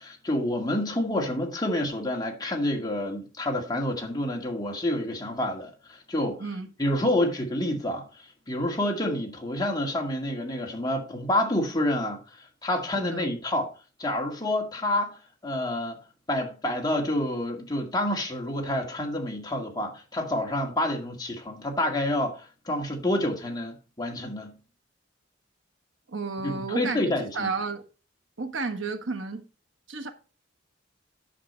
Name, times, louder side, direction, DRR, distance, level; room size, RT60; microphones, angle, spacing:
voice 1, 0.0-6.4 6.8-13.7 14.0-16.0 16.3-24.5 26.4-27.5, left 1 dB, 20° left, 1.9 m, -28 dB
voice 2, 13.0-13.3 26.1-27.8 28.4-29.4 29.9-30.1, right 4 dB, 70° right, 1.3 m, -32 dB
10.5 x 6.7 x 4.3 m
head